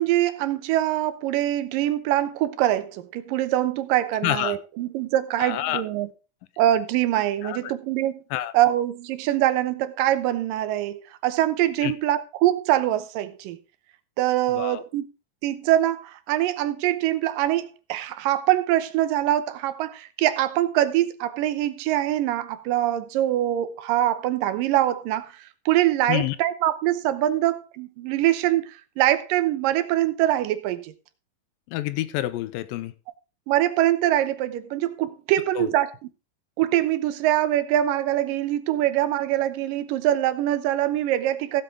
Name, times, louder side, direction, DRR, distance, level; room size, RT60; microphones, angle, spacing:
voice 1, 0.0-6.1 6.6-8.2 8.5-13.6 14.2-15.0 15.4-25.3 25.7-30.9 33.5-35.9 36.6-41.6, right 13 dB, 90° right, 2.5 m, -23 dB
voice 2, 4.2-4.6 5.4-5.8 7.4-7.7 8.3-8.5 11.8-11.9 14.5-14.8 26.1-26.4 31.7-32.9 35.6-35.7, left 14 dB, 85° left, 2.4 m, -28 dB
15.5 x 7.9 x 3.6 m
omnidirectional pair, 3.9 m